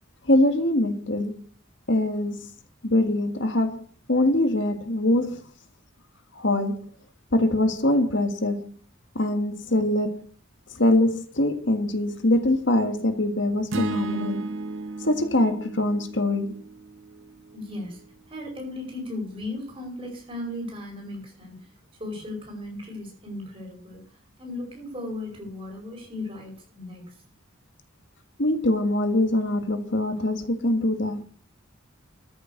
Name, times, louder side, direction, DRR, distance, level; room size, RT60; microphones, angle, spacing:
voice 1, 0.3-1.4 1.9-2.5 2.8-3.8 4.1-5.4 6.4-6.9 7.3-8.7 9.2-10.2 10.8-14.5 15.0-16.6 28.4-31.2, left 1 dB, 60° left, 8 dB, 1.7 m, -23 dB
sound 1, 13.7-18.0, right 2 dB, 65° right, 0.8 m, -34 dB
voice 2, 17.5-21.7 22.0-24.0 24.4-27.2, left 2 dB, 25° right, 0 dB, 5.2 m, -36 dB
13.5 x 6.8 x 6.5 m, 0.43 s
head